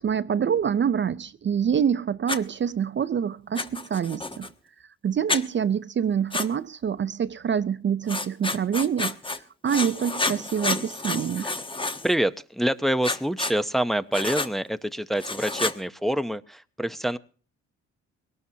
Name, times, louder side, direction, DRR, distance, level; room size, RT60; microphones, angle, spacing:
voice 1, 0.0-4.5 5.0-9.2 9.6-11.5, right 8 dB, 40° right, 0.6 m, -26 dB
Writing, 2.3-2.4 3.5-4.5 5.3-5.4 6.3-6.5 8.1-9.4 9.7-12.1 13.0-13.5 14.1-14.5 15.2-15.8, left 3 dB, 15° left, 1.2 m, -29 dB
voice 2, 12.0-17.2, right 1 dB, ahead, 0.8 m, -26 dB
22.0 x 18.5 x 2.8 m
cardioid pair, 90°, 30 cm